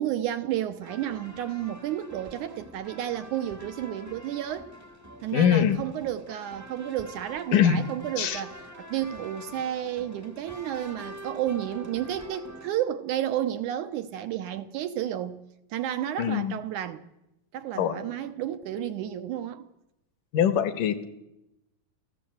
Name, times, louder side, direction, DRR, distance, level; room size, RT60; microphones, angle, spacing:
voice 1, 0.0-4.7 5.2-15.4 15.7-17.0 17.5-19.7, right 11 dB, 70° right, 2.1 m, -31 dB
sound 1, 0.8-12.7, right 1 dB, 10° right, 0.8 m, -46 dB
voice 2, 5.3-5.8 7.5-7.8 8.2-8.4 16.2-16.6 17.8-17.9 20.3-21.0, left 9 dB, 65° left, 2.8 m, -22 dB
29.5 x 15.0 x 7.9 m
omnidirectional pair, 4.2 m